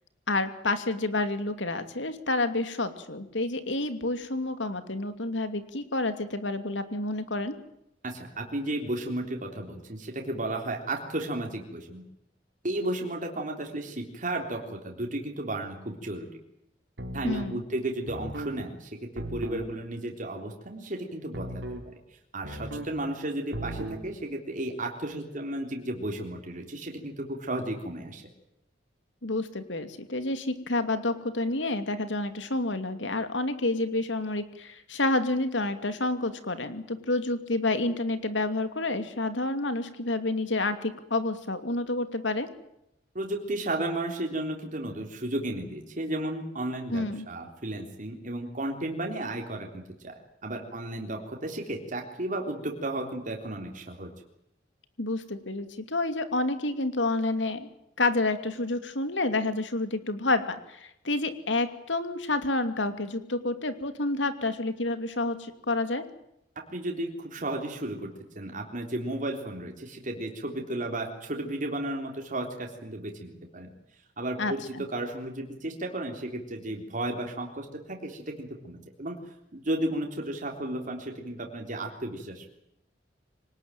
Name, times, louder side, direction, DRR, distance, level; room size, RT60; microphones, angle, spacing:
voice 1, 0.3-7.6 17.2-17.6 29.2-42.5 46.9-47.3 55.0-57.7 58.0-66.0 74.4-74.8, left 2 dB, 90° left, 9 dB, 2.7 m, -29 dB
voice 2, 8.0-12.0 12.6-16.3 17.1-22.0 22.3-28.2 43.2-50.1 50.4-54.1 66.7-68.1 68.4-73.7 74.2-74.6 74.9-79.2 79.5-82.5, right 1 dB, 45° right, 1 dB, 3.6 m, -33 dB
sound 1, 17.0-17.5 18.1-18.5 19.2-19.7 21.3-21.9 22.4-22.9 23.5-24.0, right 1 dB, 70° right, 4.3 m, -36 dB
25.0 x 19.0 x 9.2 m, 0.81 s
head